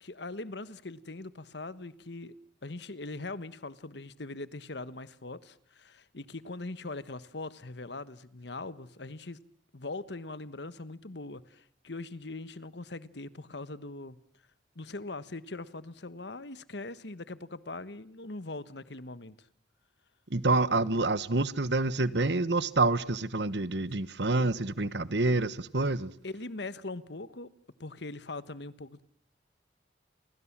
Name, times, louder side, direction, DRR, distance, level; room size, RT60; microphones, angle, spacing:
voice 1, 0.0-2.3 2.6-9.4 9.7-14.2 14.7-19.5 26.2-27.5 27.8-29.0, left 2 dB, 70° left, 1.4 m, -41 dB
voice 2, 20.3-26.1, right 3 dB, 70° right, 1.3 m, -27 dB
29.5 x 24.5 x 7.4 m
head